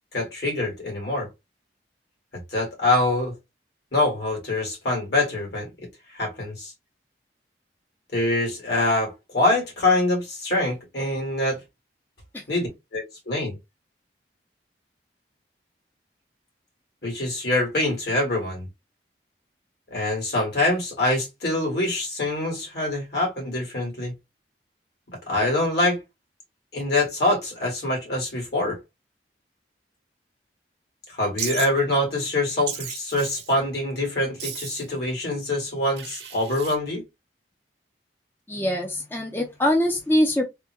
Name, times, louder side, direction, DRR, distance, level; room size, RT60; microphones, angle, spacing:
voice 1, 0.1-1.3 2.3-3.4 3.9-6.7 8.1-11.6 12.5-13.6 17.0-18.7 19.9-24.1 25.1-26.0 26.7-28.8 31.1-37.0, left 2 dB, 65° left, 2.0 m, -25 dB
Wild animals, 31.4-31.7 32.7-33.5 34.4-34.9 36.0-36.8, right 7 dB, 75° right, 0.9 m, -34 dB
voice 2, 38.5-40.4, left 1 dB, 10° left, 0.4 m, -23 dB
3.5 x 2.2 x 2.9 m
head